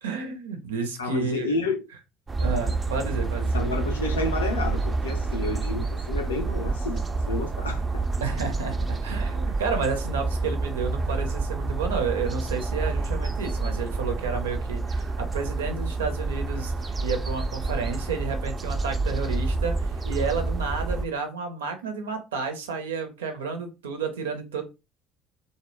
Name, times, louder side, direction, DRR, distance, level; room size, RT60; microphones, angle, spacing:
voice 1, 0.0-1.6 2.4-3.7 8.2-24.6, right 5 dB, 80° right, 0.5 m, -31 dB
voice 2, 1.0-1.8 3.5-8.0, left 3 dB, 85° left, 0.4 m, -30 dB
sound 1, 2.3-21.1, right 3 dB, 30° right, 0.3 m, -28 dB
2.1 x 2.0 x 3.1 m
figure-of-eight pair, 60°, 0 cm